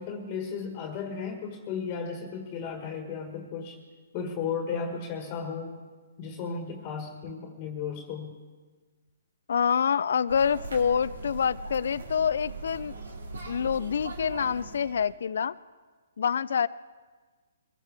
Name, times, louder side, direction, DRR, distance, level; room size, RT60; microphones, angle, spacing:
voice 1, 0.0-3.8 4.1-5.8 6.2-8.4, left 6 dB, 30° left, 4 dB, 1.6 m, -35 dB
voice 2, 9.5-12.9 13.5-15.5 16.2-16.7, left 7 dB, 70° left, 18 dB, 0.4 m, -26 dB
sound 1, 10.3-15.1, right 3 dB, 85° right, 2.2 m, -40 dB
23.5 x 15.0 x 3.5 m, 1.4 s
hypercardioid pair, 140°, 0 cm